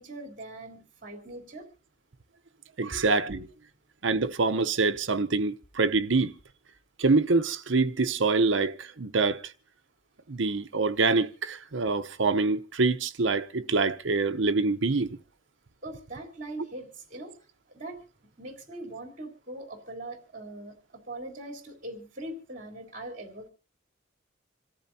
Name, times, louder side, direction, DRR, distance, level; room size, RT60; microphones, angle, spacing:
voice 1, 0.0-1.7 2.9-3.0 3.3-3.5 15.8-17.3 17.7-18.0 18.4-23.5, right 1 dB, 40° right, 3.6 m, -41 dB
voice 2, 2.8-3.4 4.0-6.3 7.0-9.5 10.3-15.2, right 3 dB, 75° right, 0.9 m, -25 dB
27.0 x 14.0 x 2.8 m
head